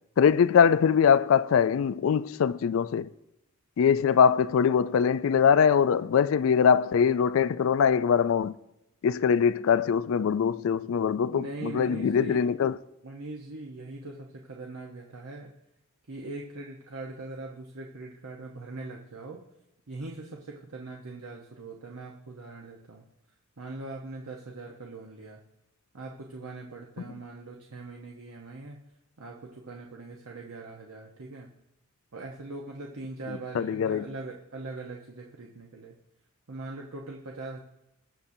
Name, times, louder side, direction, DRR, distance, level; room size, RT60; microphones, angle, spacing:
voice 1, 0.2-3.1 3.8-8.6 9.0-12.8 33.3-34.1, left 7 dB, 60° left, 0.3 m, -22 dB
voice 2, 11.3-12.5 13.0-15.5 16.1-19.4 19.9-23.0 23.6-25.4 25.9-28.8 29.2-31.5 32.1-35.9 36.5-37.6, right 2 dB, 75° right, 1.0 m, -41 dB
21.0 x 7.2 x 2.7 m
head